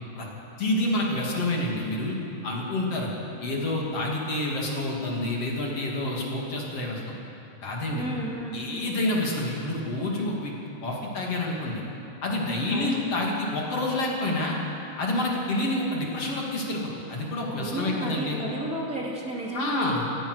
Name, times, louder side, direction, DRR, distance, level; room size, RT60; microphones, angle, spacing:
voice 1, 0.6-3.1 3.4-7.1 7.6-8.1 8.5-10.5 10.8-11.8 12.2-14.6 15.0-18.4 19.5-20.1, left 1 dB, 55° left, -2 dB, 3.6 m, -28 dB
voice 2, 8.0-8.6 12.7-13.1 17.6-19.9, right 1 dB, 30° right, -4 dB, 3.0 m, -32 dB
27.0 x 16.0 x 6.5 m, 2.9 s
omnidirectional pair, 3.4 m